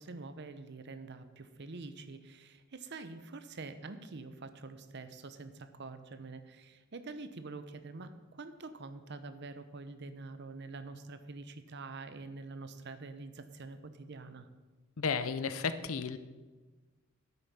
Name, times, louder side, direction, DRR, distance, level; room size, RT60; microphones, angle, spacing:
voice 1, 0.0-14.5, right 3 dB, 55° right, 11 dB, 0.7 m, -46 dB
voice 2, 15.0-16.2, left 5 dB, 75° left, 11 dB, 0.6 m, -33 dB
9.9 x 8.0 x 5.6 m, 1.3 s
head